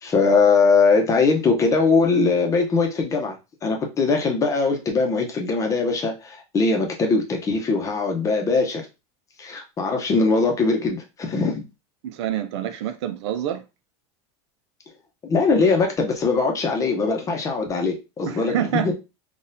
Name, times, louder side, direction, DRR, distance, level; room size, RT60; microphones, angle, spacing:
voice 1, 0.0-3.4 3.6-8.9 9.4-11.7 15.2-18.9, left 4 dB, 20° left, 0.8 m, -21 dB
voice 2, 12.0-13.6 18.3-18.9, right 10 dB, 80° right, 0.5 m, -27 dB
3.9 x 2.4 x 2.6 m
supercardioid pair, 140°, 15 cm